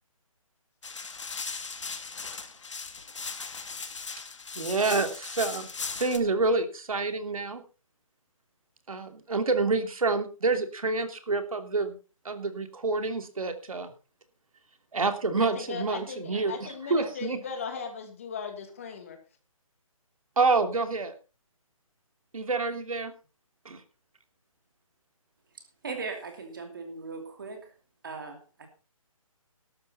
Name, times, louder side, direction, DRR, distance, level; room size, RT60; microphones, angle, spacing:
sound 1, 0.8-6.2, left 4 dB, 55° left, 2.3 m, -38 dB
voice 1, 4.5-5.7 6.0-7.6 8.9-11.9 12.2-13.9 14.9-17.4 20.4-21.1 22.3-23.1 23.6-23.8, right 3 dB, 75° right, 7 dB, 3.0 m, -28 dB
voice 2, 15.4-19.2, left 6 dB, 25° left, 6 dB, 2.2 m, -38 dB
voice 3, 25.8-27.7 28.0-28.7, right 4 dB, 35° right, 4 dB, 2.7 m, -38 dB
14.0 x 12.5 x 4.2 m, 0.33 s
hypercardioid pair, 180°, 18 cm